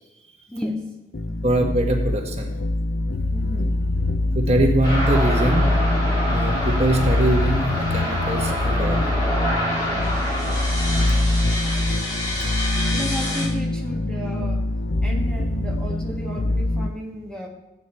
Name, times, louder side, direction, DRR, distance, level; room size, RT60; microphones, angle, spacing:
voice 1, 0.5-1.5 3.3-3.7 9.9-10.3 12.9-17.5, equal, 5° left, -1 dB, 1.5 m, -34 dB
sound 1, 1.1-16.9, left 2 dB, 70° left, 0.7 m, -23 dB
voice 2, 1.4-2.5 4.3-5.7 6.3-9.0, right 1 dB, 35° right, 1 dB, 1.5 m, -22 dB
sound 2, 4.8-13.5, equal, 20° left, 2.8 m, -27 dB
15.5 x 9.3 x 4.4 m, 0.94 s
head